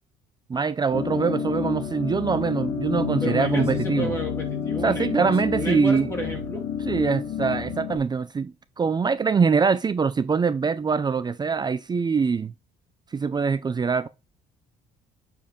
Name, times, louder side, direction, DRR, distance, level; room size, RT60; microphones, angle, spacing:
voice 1, 0.5-4.1 4.8-6.1 6.9-12.5 13.1-14.1, right 5 dB, 25° right, 0.5 m, -23 dB
sound 1, 0.9-8.0, left 7 dB, 65° left, 2.1 m, -29 dB
voice 2, 3.2-6.7, equal, 15° left, 2.6 m, -32 dB
7.1 x 4.6 x 3.7 m
cardioid pair, 110°, 17 cm